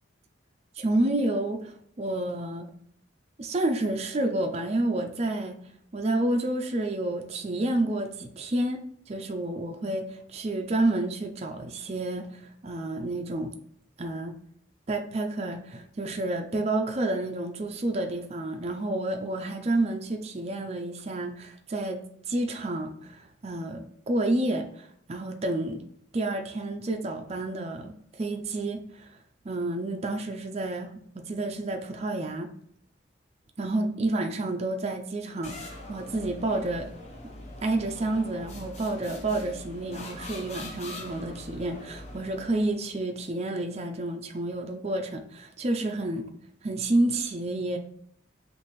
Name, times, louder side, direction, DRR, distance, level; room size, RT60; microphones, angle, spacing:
voice 1, 0.8-2.7 3.4-5.6 5.9-13.5 14.0-14.3 14.9-22.0 22.3-25.8 26.1-29.1 29.4-32.5 33.6-36.9 37.2-37.3 37.6-46.3 46.6-47.8, right 2 dB, 30° right, 0.4 m, -29 dB
sound 1, 35.4-42.8, left 1 dB, 35° left, 0.7 m, -42 dB
5.7 x 2.6 x 3.1 m
head